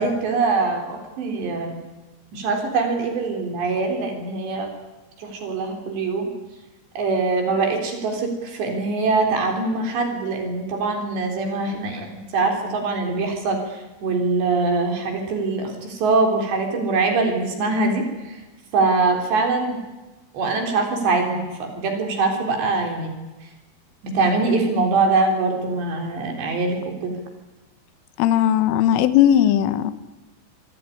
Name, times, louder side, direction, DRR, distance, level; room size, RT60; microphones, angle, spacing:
voice 1, 0.0-1.8 2.3-4.7 5.2-6.3 7.0-18.4 18.7-19.8 20.3-23.2 24.0-27.2, right 3 dB, 65° right, 4 dB, 5.7 m, -23 dB
voice 2, 28.2-29.9, left 11 dB, 90° left, 12 dB, 3.8 m, -17 dB
26.0 x 17.5 x 9.9 m, 1.1 s
omnidirectional pair, 5.5 m